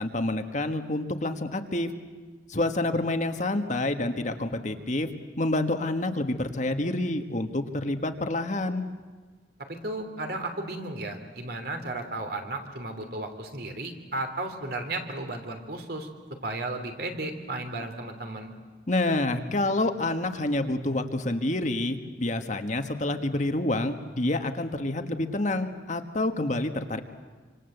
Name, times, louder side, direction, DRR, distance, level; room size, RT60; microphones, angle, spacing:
voice 1, 0.0-1.9 2.5-5.1 5.4-8.8 18.9-27.0, left 2 dB, 40° left, 6 dB, 1.5 m, -28 dB
voice 2, 9.7-16.1 16.4-18.5, right 2 dB, 60° right, 6 dB, 3.2 m, -34 dB
27.0 x 26.0 x 8.0 m, 1.4 s
head